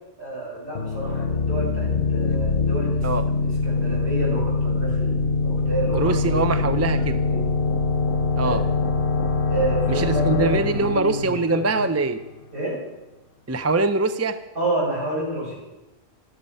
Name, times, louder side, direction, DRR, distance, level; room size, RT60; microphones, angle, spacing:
voice 1, 0.2-3.1 3.4-7.4 8.4-8.7 9.5-11.9 12.5-12.8 14.6-15.6, right 1 dB, 60° right, -5 dB, 7.0 m, -29 dB
sound 1, 0.7-12.3, left 3 dB, 55° left, 0.9 m, -24 dB
voice 2, 5.9-7.2 8.4-8.6 9.9-12.2 13.5-14.4, right 3 dB, 20° right, 10 dB, 0.4 m, -23 dB
13.0 x 12.5 x 5.4 m, 1.0 s
omnidirectional pair, 1.1 m